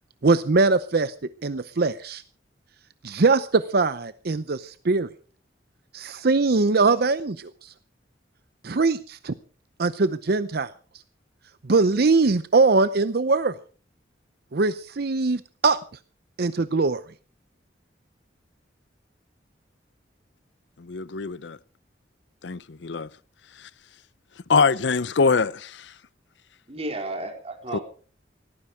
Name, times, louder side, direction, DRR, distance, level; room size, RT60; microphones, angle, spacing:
voice 1, 0.2-1.1 1.4-2.2 3.0-5.1 5.9-7.7 8.6-9.3 9.8-10.7 11.6-13.5 14.5-15.8 16.4-17.0, right 3 dB, 60° right, 0.7 m, -22 dB
voice 2, 20.8-21.6 22.4-23.1 24.5-25.9 27.7-27.8, left 4 dB, 70° left, 0.6 m, -23 dB
voice 3, 26.7-27.8, right 2 dB, 35° right, 4.2 m, -32 dB
17.5 x 14.5 x 4.9 m
head